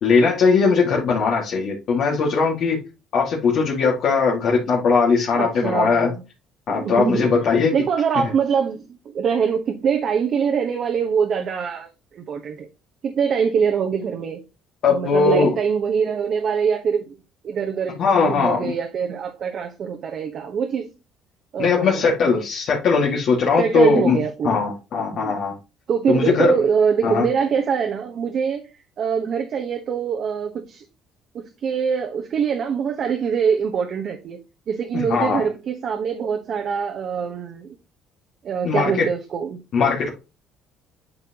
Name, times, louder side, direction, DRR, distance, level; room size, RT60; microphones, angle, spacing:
voice 1, 0.0-2.8 3.1-6.1 6.7-7.7 14.8-15.5 18.0-18.7 21.6-24.2 24.4-25.6 26.1-26.5 27.0-27.3 34.9-35.4 38.6-39.1 39.7-40.1, left 4 dB, 55° left, 2.0 m, -19 dB
voice 2, 5.4-6.2 6.7-7.3 7.7-8.9 9.1-12.7 13.0-14.4 14.9-17.2 17.4-20.9 21.5-22.4 23.6-24.6 25.1-25.4 25.9-28.7 29.0-30.8 31.3-34.4 34.7-37.7 38.4-39.6, right 6 dB, 50° right, 1.1 m, -23 dB
9.0 x 5.8 x 2.9 m
cardioid pair, 115°, 0 cm